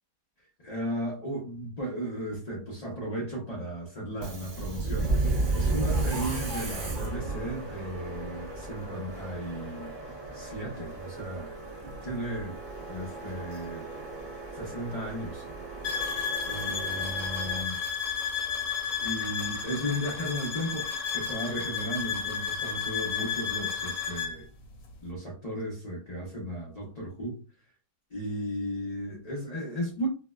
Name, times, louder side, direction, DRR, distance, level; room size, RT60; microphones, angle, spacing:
voice 1, 0.6-9.9 10.3-11.5 12.0-12.6 12.9-13.9 14.5-15.4 16.5-17.8 19.0-24.5 25.0-27.4 28.1-30.1, equal, 75° left, -4 dB, 0.3 m, -35 dB
Subway metro underground, 4.1-17.6, right 2 dB, 40° right, 0.7 m, -34 dB
sound 1, 15.8-24.4, left 6 dB, 60° left, 1.0 m, -32 dB
4.6 x 2.1 x 2.2 m, 0.36 s
omnidirectional pair, 1.9 m